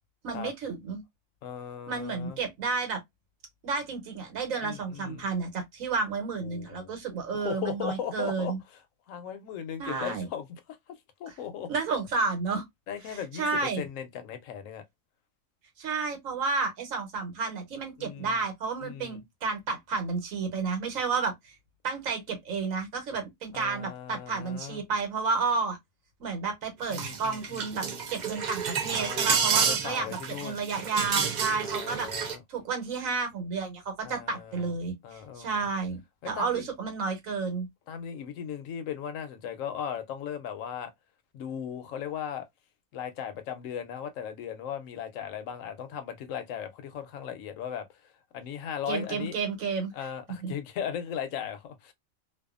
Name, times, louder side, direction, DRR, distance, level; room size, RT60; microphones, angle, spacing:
voice 1, 0.2-1.0 1.9-3.0 3.6-8.6 9.8-10.3 11.7-12.6 13.1-13.9 15.8-21.6 21.8-25.8 26.2-27.8 28.1-32.1 32.5-36.0 36.3-37.7 48.9-49.9 50.4-50.5, right 4 dB, 85° right, 1.3 m, -31 dB
voice 2, 1.4-2.4 4.6-5.3 6.4-7.0 7.3-8.8 9.1-10.5 10.9-11.7 12.9-14.8 18.0-18.4 18.8-19.2 23.5-24.8 26.9-28.1 28.9-30.6 31.6-32.4 34.0-34.7 35.0-35.7 36.2-36.6 37.9-40.9 41.3-42.5 42.9-49.4 49.9-51.9, left 8 dB, 80° left, 1.0 m, -37 dB
sound 1, 26.8-32.4, right 6 dB, 65° right, 0.4 m, -30 dB
2.6 x 2.3 x 2.3 m
omnidirectional pair, 1.4 m